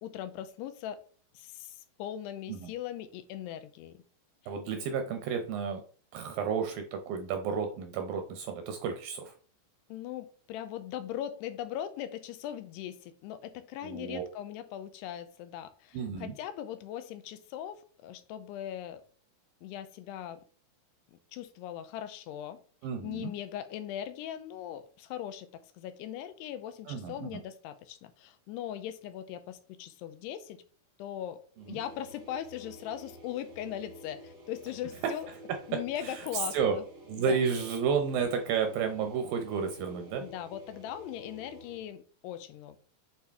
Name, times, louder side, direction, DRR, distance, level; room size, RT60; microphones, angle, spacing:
voice 1, 0.0-1.0 1.4-4.0 9.9-19.0 19.6-20.4 21.3-22.6 23.0-30.6 31.0-31.4 31.7-35.3 35.7-36.8 37.2-37.4 40.2-42.8, left 11 dB, 85° left, 11 dB, 2.7 m, -40 dB
voice 2, 4.5-5.8 6.1-9.3 13.8-14.2 15.9-16.3 22.8-23.3 26.9-27.4 31.6-31.8 35.3-36.8 37.1-40.3, right 6 dB, 75° right, 6 dB, 2.1 m, -32 dB
sound 1, 31.5-42.0, equal, 40° right, 1.2 m, -51 dB
8.6 x 4.4 x 3.5 m, 0.42 s
omnidirectional pair, 4.7 m